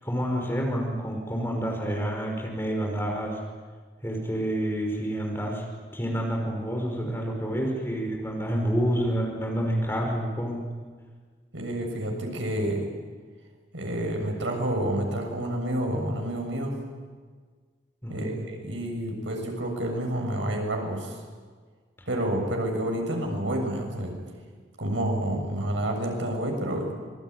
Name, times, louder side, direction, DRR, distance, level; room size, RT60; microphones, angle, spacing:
voice 1, 0.0-3.4 4.0-5.6 5.9-10.6 18.0-18.4, equal, 10° left, 0 dB, 5.5 m, -28 dB
voice 2, 11.5-12.8 13.7-16.7 18.1-21.2 22.1-24.2 24.8-27.0, right 1 dB, 85° right, 2 dB, 7.1 m, -29 dB
26.0 x 23.0 x 9.7 m, 1.5 s
head